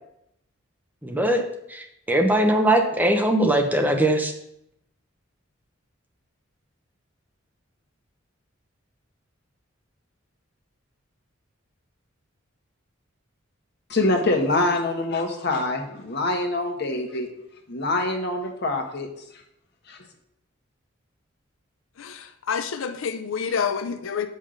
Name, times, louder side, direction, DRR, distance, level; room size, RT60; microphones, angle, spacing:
voice 1, 1.0-1.4 1.7-4.3, right 1 dB, 10° right, 3 dB, 0.8 m, -21 dB
voice 2, 13.9-17.3 17.7-19.1 19.9-20.0, left 2 dB, 55° left, 2 dB, 1.3 m, -25 dB
voice 3, 22.0-24.3, left 6 dB, 80° left, 9 dB, 0.5 m, -28 dB
7.2 x 5.5 x 5.1 m, 0.78 s
head